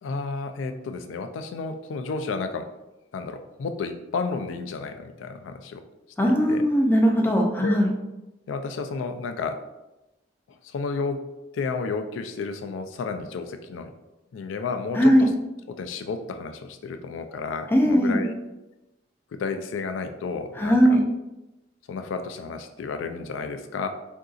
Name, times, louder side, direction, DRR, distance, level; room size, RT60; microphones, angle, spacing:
voice 1, 0.0-2.7 3.1-5.8 6.2-6.6 7.6-7.8 8.5-9.6 10.6-11.3 11.5-13.9 14.3-15.3 15.7-18.3 19.3-21.0 21.9-23.9, left 4 dB, 90° left, 7 dB, 0.3 m, -32 dB
voice 2, 6.2-7.9 14.9-15.2 17.7-18.2 20.6-21.0, equal, 10° left, 1 dB, 0.4 m, -19 dB
3.7 x 2.6 x 2.4 m, 0.99 s
head